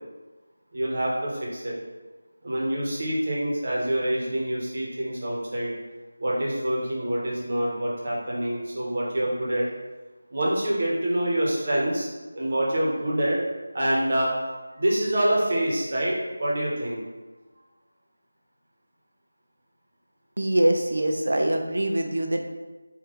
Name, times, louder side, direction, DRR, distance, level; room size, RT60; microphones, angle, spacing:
voice 1, 0.7-1.7 2.4-5.7 6.2-9.7 10.3-12.1 12.3-13.4 13.7-14.3 14.7-17.0, right 1 dB, 45° right, -4 dB, 1.2 m, -26 dB
voice 2, 20.4-22.4, right 1 dB, 65° right, 3 dB, 0.6 m, -23 dB
3.8 x 2.7 x 3.9 m, 1.2 s
figure-of-eight pair, 170°, 0 cm